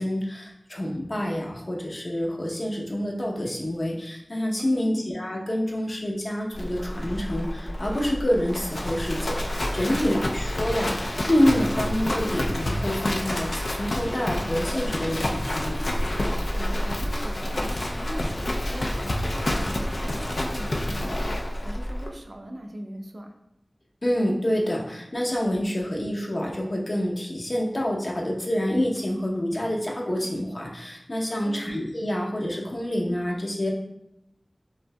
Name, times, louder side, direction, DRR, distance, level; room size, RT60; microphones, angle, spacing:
voice 1, 0.0-15.8 24.0-33.7, equal, 55° left, -2 dB, 0.8 m, -27 dB
Livestock farm animals working animals, 6.5-22.1, left 1 dB, 85° left, 0.4 m, -28 dB
voice 2, 16.5-21.4 21.6-23.3 31.4-31.6, right 1 dB, 65° right, 3 dB, 0.5 m, -40 dB
5.2 x 2.7 x 2.3 m, 0.83 s
wide cardioid pair, 55°, 0 cm